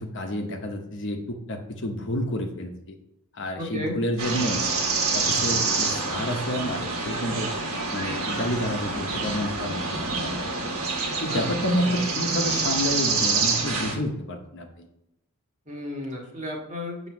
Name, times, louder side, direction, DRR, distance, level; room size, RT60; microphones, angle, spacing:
voice 1, 0.0-3.0 3.3-4.6 5.1-7.5 7.9-9.8 10.2-10.7 11.2-14.9, left 1 dB, 55° left, 3 dB, 1.0 m, -29 dB
voice 2, 3.6-4.0 11.3-11.5 11.8-12.1 15.7-17.1, left 1 dB, 35° right, -1 dB, 1.6 m, -33 dB
sound 1, 4.2-13.9, right 3 dB, 70° right, 1.4 m, -27 dB
7.6 x 3.1 x 6.0 m, 0.85 s
head